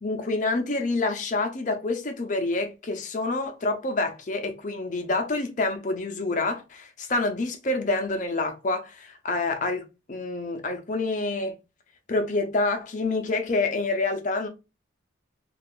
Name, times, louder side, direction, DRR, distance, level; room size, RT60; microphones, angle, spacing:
voice 1, 0.0-9.8 10.1-11.5 12.1-14.5, left 2 dB, 40° left, 0.5 m, -27 dB
2.4 x 2.4 x 3.6 m
head